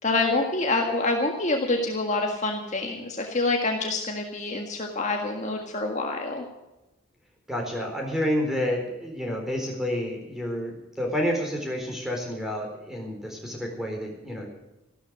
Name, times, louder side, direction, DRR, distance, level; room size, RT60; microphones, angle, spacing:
voice 1, 0.0-6.4, left 2 dB, 35° left, 1 dB, 1.7 m, -26 dB
voice 2, 7.5-14.5, equal, ahead, 0 dB, 4.0 m, -29 dB
14.5 x 13.0 x 6.4 m, 0.98 s
head